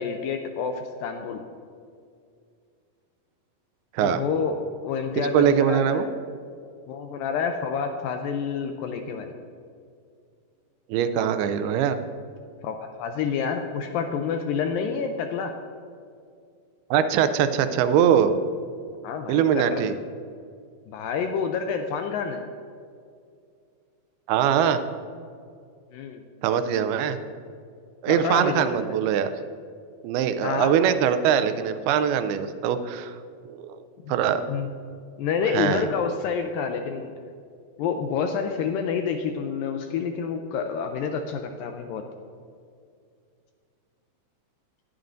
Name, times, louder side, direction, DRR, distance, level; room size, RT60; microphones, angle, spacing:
voice 1, 0.0-1.4 4.0-6.1 6.9-9.3 12.6-15.5 19.0-19.9 20.9-22.4 25.9-26.2 28.1-28.7 30.4-30.7 34.0-34.1 34.5-34.7 35.2-37.1 37.8-42.0, left 6 dB, 85° left, 5 dB, 2.1 m, -28 dB
voice 2, 5.3-6.1 10.9-12.0 16.9-18.3 19.3-19.9 24.3-24.8 26.4-27.2 28.0-29.3 30.0-33.1 33.5-33.8 34.1-34.4 35.5-35.9, right 8 dB, 85° right, 10 dB, 2.5 m, -22 dB
20.5 x 8.9 x 2.6 m, 2.3 s
omnidirectional pair, 4.5 m